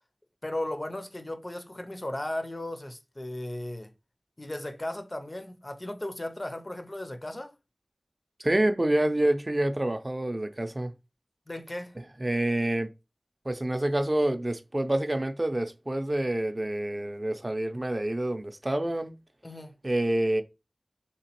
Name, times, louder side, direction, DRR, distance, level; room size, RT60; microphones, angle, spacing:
voice 1, 0.4-3.9 4.4-7.5 11.5-12.0 19.4-19.7, left 1 dB, 40° left, 0.5 m, -36 dB
voice 2, 8.4-10.9 12.0-12.9 13.5-19.1 19.8-20.4, right 1 dB, 40° right, 0.4 m, -27 dB
3.5 x 2.9 x 2.9 m
wide cardioid pair, 55°, 0 cm